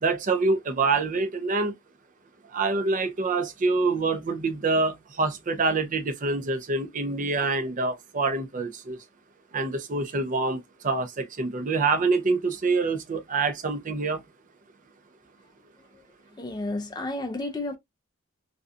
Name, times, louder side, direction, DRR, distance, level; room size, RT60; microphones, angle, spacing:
voice 1, 0.0-1.7 2.5-9.0 9.5-14.2, right 3 dB, 35° right, 0.5 m, -26 dB
voice 2, 15.4-17.8, left 2 dB, 20° left, 0.5 m, -33 dB
2.5 x 2.2 x 2.5 m
head